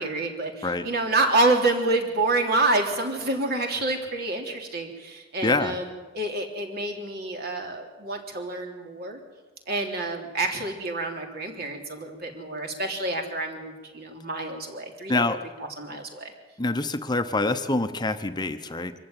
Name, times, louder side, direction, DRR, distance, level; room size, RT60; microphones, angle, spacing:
voice 1, 0.0-5.9 6.1-9.2 9.7-15.2 15.6-16.3, right 2 dB, 60° right, 2 dB, 3.4 m, -27 dB
voice 2, 5.4-5.8 15.1-15.4 16.6-18.9, left 2 dB, 25° left, 9 dB, 0.9 m, -25 dB
24.5 x 14.5 x 9.0 m, 1.3 s
head